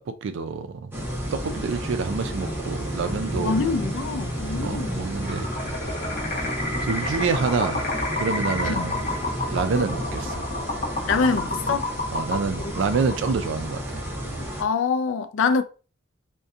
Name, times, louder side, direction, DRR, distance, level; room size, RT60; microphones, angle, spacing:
voice 1, 0.1-0.9 1.3-3.6 4.6-5.5 6.8-7.8 8.2-9.0 9.5-10.5 12.1-14.0, right 5 dB, 65° right, 0.4 m, -27 dB
sound 1, 0.9-14.6, equal, 10° right, 0.6 m, -32 dB
sound 2, 1.4-9.8, right 2 dB, 25° left, 1.0 m, -42 dB
voice 2, 3.4-5.0 8.6-8.9 11.1-11.9 14.6-15.6, left 5 dB, 65° left, 0.3 m, -25 dB
sound 3, 5.2-13.7, left 2 dB, 40° left, 1.3 m, -30 dB
2.6 x 2.2 x 2.4 m
head